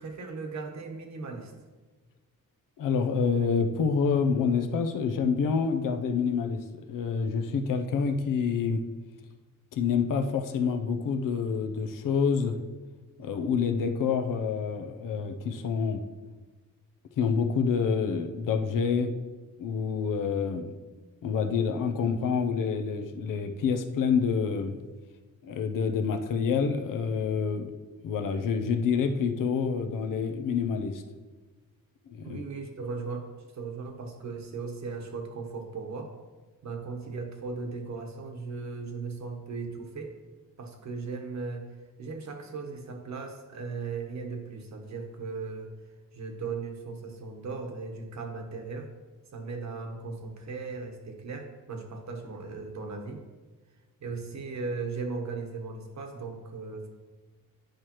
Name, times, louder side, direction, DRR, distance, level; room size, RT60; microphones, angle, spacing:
voice 1, 0.0-1.5 13.2-13.5 32.2-33.3 33.5-36.1 36.6-40.1 40.6-41.6 42.0-45.7 46.1-48.9 49.3-53.2 54.0-56.9, right 4 dB, 55° right, 3 dB, 1.2 m, -37 dB
voice 2, 2.8-8.8 9.7-12.6 13.2-16.0 17.2-19.1 19.6-20.7 21.2-24.8 25.4-27.7 28.0-31.0 32.1-32.4, left 6 dB, 70° left, 6 dB, 0.7 m, -27 dB
10.5 x 4.8 x 3.0 m, 1.3 s
wide cardioid pair, 135°, 34 cm